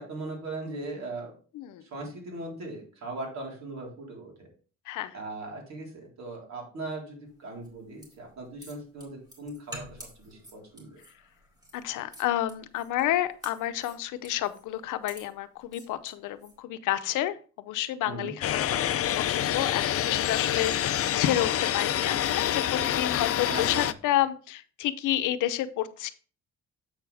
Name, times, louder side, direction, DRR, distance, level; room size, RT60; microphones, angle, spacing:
voice 1, 0.0-1.3 1.8-4.5 5.1-11.0 18.0-18.3 23.4-23.9, right 2 dB, 65° right, -1 dB, 3.8 m, -39 dB
sound 1, 7.6-16.6, equal, 15° right, 4.0 m, -49 dB
voice 2, 11.7-26.1, left 13 dB, 90° left, 12 dB, 0.7 m, -30 dB
sound 2, 18.4-23.9, left 11 dB, 50° left, 0.5 m, -27 dB
7.9 x 6.1 x 3.4 m, 0.38 s
cardioid pair, 90°, 30 cm